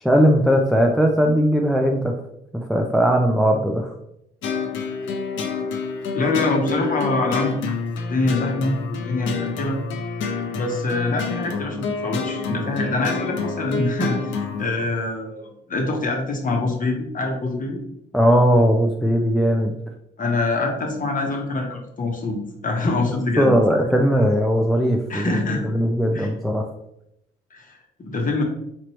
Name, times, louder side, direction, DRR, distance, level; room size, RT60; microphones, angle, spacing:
voice 1, 0.0-2.1 2.5-3.9 18.1-19.8 23.4-26.7, equal, ahead, 1 dB, 0.4 m, -19 dB
sound 1, 4.4-14.6, left 4 dB, 75° left, 0.7 m, -28 dB
voice 2, 6.1-8.8 9.0-9.8 10.5-17.8 20.2-23.5 25.1-25.7 26.1-26.3 27.5-28.4, left 2 dB, 45° left, 1 dB, 1.1 m, -25 dB
4.4 x 3.0 x 3.0 m, 0.80 s
cardioid pair, 90°, 20 cm